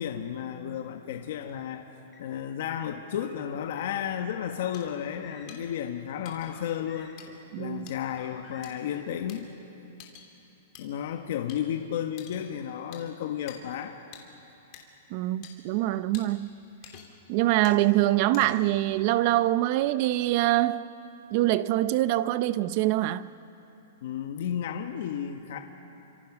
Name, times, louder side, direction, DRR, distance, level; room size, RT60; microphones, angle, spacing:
voice 1, 0.0-1.9 2.2-7.2 7.6-9.5 10.8-13.9 24.0-25.6, left 9 dB, 55° left, 1.4 m, -33 dB
Car, 1.4-2.4 3.1-4.1 4.7-5.7 6.4-7.4 8.0-9.0, left 4 dB, 15° left, 5.3 m, -53 dB
sound 1, 4.7-4.8 5.5-5.6 6.2-6.5 7.2-7.3 7.9-8.0 8.6-8.7 9.3-9.4 10.0-10.3 10.7-10.8 11.5-11.6 12.2-12.4 12.9-13.0 13.5-13.6 14.1-14.2 14.7-14.8 15.4-15.5 16.1-16.2 16.8-17.2 17.6-17.8 18.3-18.7, left 11 dB, 30° left, 3.0 m, -47 dB
voice 2, 7.5-7.9 15.1-16.6 17.3-20.9 21.3-23.3, right 15 dB, 35° right, 0.6 m, -24 dB
29.5 x 26.0 x 6.2 m
hypercardioid pair, 165°, 0 cm